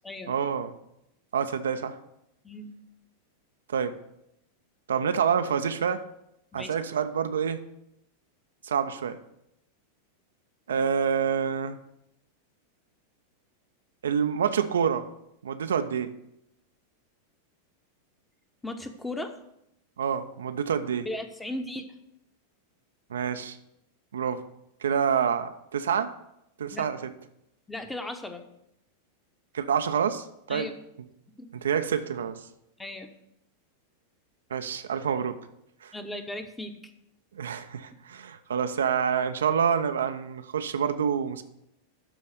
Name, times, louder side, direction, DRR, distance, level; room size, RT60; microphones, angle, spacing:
voice 1, 0.3-0.7 1.3-2.0 3.7-4.0 4.9-6.0 6.5-7.6 8.6-9.2 10.7-11.8 14.0-15.1 15.4-16.1 20.0-21.1 23.1-23.6 24.1-24.4 24.8-26.1 26.6-27.1 29.5-30.7 31.5-32.4 34.5-35.4 35.8-35.9 37.3-41.4, right 7 dB, 65° right, 9 dB, 0.5 m, -27 dB
voice 2, 18.6-19.4 21.0-21.8 26.7-26.9 27.7-28.4 30.5-30.7 31.4-31.5 32.8-33.1 35.9-36.8, left 1 dB, 10° left, 7 dB, 1.0 m, -36 dB
12.0 x 4.0 x 6.5 m, 0.81 s
figure-of-eight pair, 90°, 0 cm